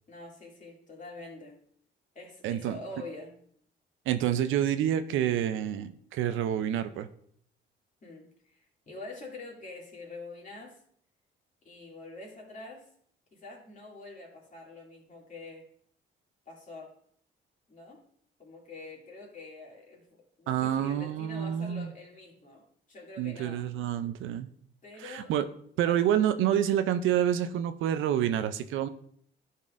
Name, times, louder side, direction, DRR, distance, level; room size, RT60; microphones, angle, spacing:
voice 1, 0.1-1.6 2.1-3.3 8.0-10.8 11.6-12.9 13.3-15.7 16.5-16.9 17.7-18.0 18.4-20.0 20.4-23.6 24.8-25.3 25.8-26.1, left 2 dB, 40° left, -2 dB, 2.4 m, -45 dB
voice 2, 2.4-2.8 4.1-7.1 20.5-21.9 23.2-24.5 25.0-25.5 25.8-28.9, right 10 dB, 85° right, 11 dB, 0.5 m, -28 dB
12.0 x 4.1 x 2.5 m, 0.64 s
cardioid pair, 90°, 20 cm